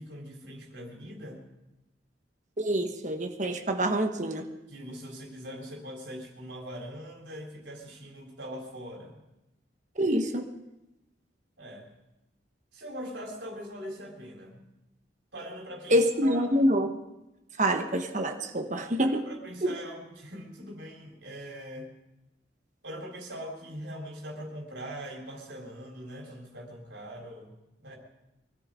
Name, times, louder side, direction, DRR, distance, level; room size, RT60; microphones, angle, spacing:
voice 1, 0.0-1.4 4.7-9.2 11.6-11.9 12.7-14.6 15.3-16.5 19.0-21.9 22.8-28.0, equal, 75° right, 0 dB, 3.9 m, -42 dB
voice 2, 2.6-4.4 10.0-10.5 15.9-17.0 17.6-19.2 19.6-19.8, equal, 40° right, 5 dB, 1.2 m, -26 dB
24.0 x 13.5 x 3.8 m, 0.93 s
head